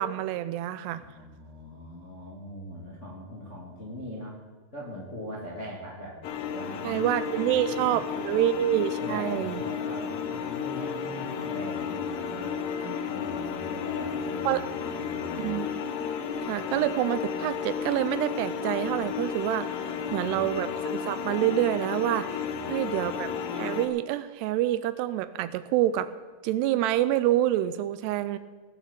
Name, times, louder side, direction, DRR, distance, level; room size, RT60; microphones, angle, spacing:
voice 1, 0.0-1.0 6.8-9.6 12.8-13.0 14.5-14.6 15.4-15.7 16.5-26.1 26.4-28.4, right 13 dB, 85° right, 14 dB, 2.6 m, -27 dB
voice 2, 1.0-4.4 4.7-6.2 6.5-8.5 9.0-12.5 13.0-15.6 19.9-20.8 22.4-23.1, equal, 30° left, -3 dB, 1.5 m, -41 dB
sound 1, 6.2-23.9, left 7 dB, 70° left, 2.1 m, -33 dB
19.0 x 7.5 x 6.8 m, 1.5 s
omnidirectional pair, 4.9 m